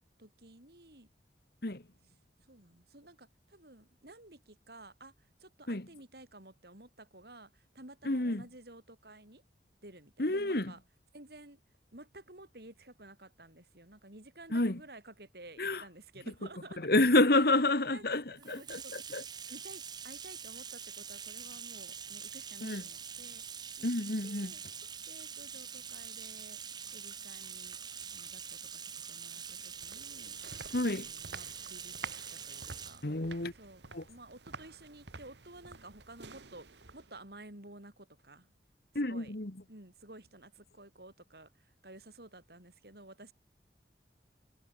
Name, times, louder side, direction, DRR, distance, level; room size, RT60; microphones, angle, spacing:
voice 1, 0.2-1.1 2.5-9.4 9.8-10.8 11.1-11.6 11.9-16.9 17.9-23.9 24.2-24.6 25.1-26.6 26.9-27.8 28.1-30.4 30.9-31.9 32.3-33.1 33.6-38.5 39.0-39.3 39.7-43.3, right 2 dB, 60° right, 4.7 m, -53 dB
voice 2, 8.1-8.4 10.2-10.7 14.5-14.8 15.6-15.8 16.8-19.2 22.6-22.8 23.8-24.5 30.7-31.1 33.0-33.5 33.9-34.0 39.0-39.5, left 2 dB, 60° left, 1.9 m, -29 dB
Bathtub (filling or washing), 18.4-33.0, right 7 dB, 25° right, 1.4 m, -45 dB
sound 1, 29.5-37.3, right 4 dB, 80° right, 1.9 m, -50 dB
head